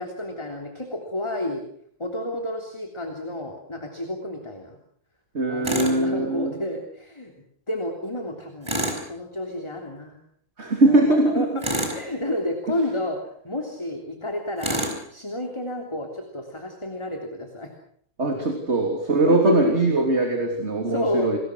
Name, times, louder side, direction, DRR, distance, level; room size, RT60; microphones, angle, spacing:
voice 1, 0.0-1.6 2.0-4.8 5.5-7.3 7.7-10.2 10.8-11.6 11.9-13.2 13.4-14.8 15.1-17.7 18.5-18.6 19.1-19.7 20.3-20.4 20.9-21.3, left 1 dB, 15° left, 3 dB, 3.2 m, -30 dB
voice 2, 5.3-6.5 10.6-11.5 18.2-21.4, right 2 dB, 30° right, 3 dB, 3.5 m, -21 dB
Tools, 5.6-6.0 8.6-9.1 11.6-12.1 14.6-15.0, equal, 15° right, 5.6 m, -27 dB
29.5 x 21.5 x 6.4 m, 0.64 s
omnidirectional pair, 2.2 m